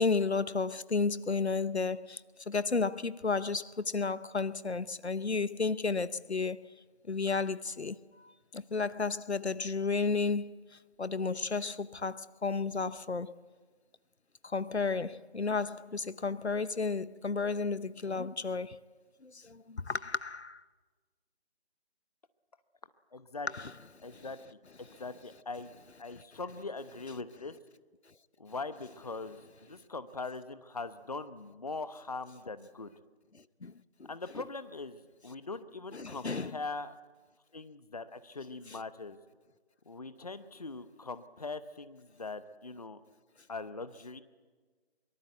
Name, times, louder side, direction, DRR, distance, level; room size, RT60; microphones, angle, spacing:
voice 1, 0.0-2.2 2.5-6.6 7.1-8.0 8.5-10.5 11.0-13.3 14.5-18.8 19.2-20.6 23.5-23.7 33.6-33.7 34.0-34.1 34.3-34.4 35.9-36.6, left 4 dB, 85° left, 0.9 m, -32 dB
voice 2, 23.1-23.5 24.0-25.7 26.0-27.5 28.4-32.9 34.1-36.9 37.5-39.2 39.9-43.0 43.5-44.2, left 3 dB, 35° left, 0.9 m, -41 dB
23.5 x 23.0 x 8.1 m
figure-of-eight pair, 160°, 32 cm